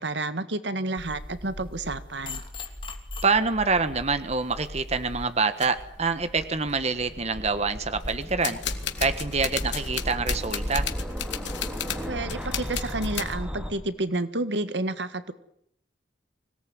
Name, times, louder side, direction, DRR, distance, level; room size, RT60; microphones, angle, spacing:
voice 1, 0.0-2.4 12.1-15.3, right 2 dB, 70° right, 12 dB, 1.7 m, -30 dB
sound 1, 1.0-5.3, left 2 dB, 30° left, 3.0 m, -40 dB
voice 2, 3.2-8.6 9.0-10.9, right 4 dB, 35° right, 10 dB, 1.5 m, -26 dB
sound 2, 4.4-4.8 5.6-5.7 6.4-6.5 6.7-7.2 8.0-13.3, left 10 dB, 85° left, 2.6 m, -34 dB
sound 3, 5.5-13.7, equal, 5° right, 4.3 m, -34 dB
25.0 x 18.0 x 9.6 m, 0.72 s
head